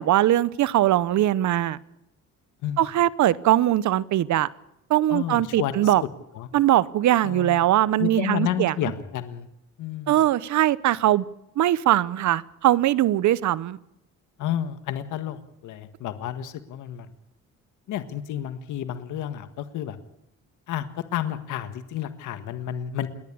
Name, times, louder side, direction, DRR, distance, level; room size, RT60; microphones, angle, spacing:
voice 1, 0.0-1.8 2.8-4.5 4.9-6.0 6.5-8.7 10.1-11.2 11.6-13.8, right 13 dB, 70° right, 0.9 m, -21 dB
voice 2, 5.1-6.1 6.3-6.5 7.2-7.6 8.0-9.5 9.8-10.2 14.4-17.1 17.9-20.0 20.7-20.9 21.1-23.1, left 11 dB, 85° left, 1.6 m, -31 dB
28.5 x 11.0 x 8.5 m
cardioid pair, 90°, 30 cm